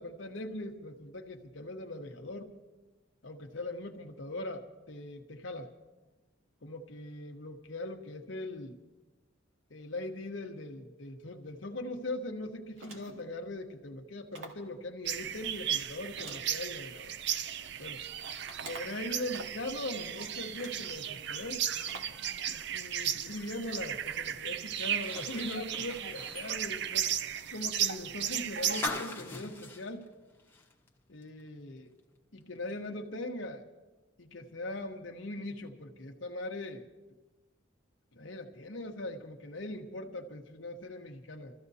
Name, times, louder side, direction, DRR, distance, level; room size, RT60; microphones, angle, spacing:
voice 1, 0.0-2.5 3.2-5.7 6.6-8.8 9.7-17.1 17.8-18.0 18.6-21.6 22.5-27.1 27.5-30.0 31.1-31.9 32.3-33.6 34.2-36.8 38.1-41.5, left 1 dB, 75° left, 2 dB, 1.1 m, -40 dB
sound 1, 12.7-13.3 14.3-14.7 16.2-17.2 18.5-19.1 20.0-20.1 20.5-20.9 21.9-22.2, right 2 dB, 90° right, 2.1 m, -48 dB
sound 2, 15.0-28.9, right 9 dB, 60° right, 0.5 m, -35 dB
sound 3, 24.8-30.9 31.2-31.3 32.7-32.8, left 2 dB, 10° left, 1.1 m, -42 dB
28.5 x 14.5 x 2.8 m, 1.2 s
head